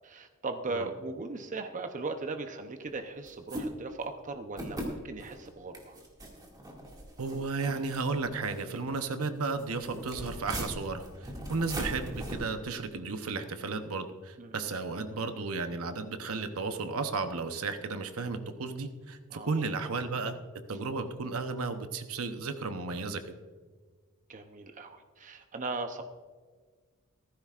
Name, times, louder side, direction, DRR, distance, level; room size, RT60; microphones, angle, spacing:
voice 1, 0.0-6.0 14.4-14.6 19.3-19.5 24.3-26.0, right 3 dB, 35° right, 6 dB, 0.7 m, -38 dB
sound 1, 3.3-3.7 4.0-4.1 4.6-4.9 5.2-5.5 5.7-8.9 9.4-12.3, equal, 20° right, 2.2 m, -40 dB
voice 2, 7.2-20.3 20.7-23.3, right 4 dB, 75° right, 8 dB, 0.9 m, -34 dB
15.5 x 14.5 x 2.5 m, 1.5 s
head